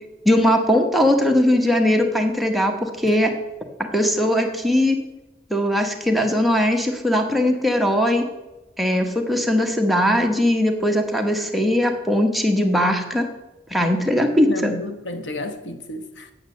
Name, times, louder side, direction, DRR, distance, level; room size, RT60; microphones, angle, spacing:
voice 1, 0.2-3.3 3.9-5.0 5.5-8.3 8.8-13.3 13.7-14.7, left 1 dB, ahead, 2 dB, 1.0 m, -19 dB
voice 2, 14.4-16.3, left 2 dB, 90° left, 8 dB, 0.9 m, -32 dB
8.8 x 7.3 x 6.5 m, 1.0 s
head